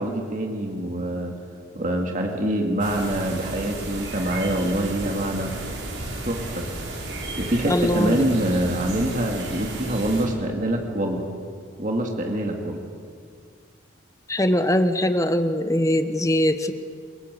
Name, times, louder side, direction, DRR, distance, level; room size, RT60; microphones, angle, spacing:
voice 1, 0.0-1.3 1.7-5.5 6.2-6.7 7.4-11.3 11.8-12.8, right 1 dB, 40° right, 1 dB, 2.3 m, -25 dB
sound 1, 2.8-10.3, right 2 dB, 70° right, 6.1 m, -33 dB
voice 2, 7.7-8.3 14.3-16.7, left 1 dB, 15° left, 9 dB, 0.9 m, -21 dB
28.5 x 18.5 x 8.3 m, 2.2 s
head